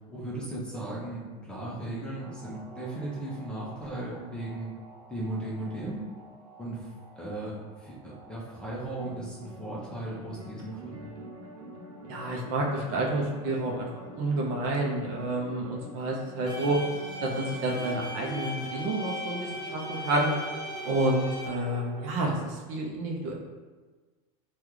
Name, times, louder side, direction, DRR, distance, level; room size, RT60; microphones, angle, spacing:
voice 1, 0.1-4.7 5.1-6.0 6.6-11.1, right 1 dB, 5° left, -7 dB, 0.6 m, -37 dB
sound 1, 2.2-22.1, right 2 dB, 75° right, 0.8 m, -45 dB
voice 2, 12.1-13.9 14.1-16.8 17.2-20.3 20.8-23.4, right 2 dB, 45° right, -2 dB, 0.5 m, -29 dB
sound 2, 16.5-21.5, left 1 dB, 45° left, 0.9 m, -38 dB
3.6 x 2.3 x 3.1 m, 1.3 s
supercardioid pair, 155°, 19 cm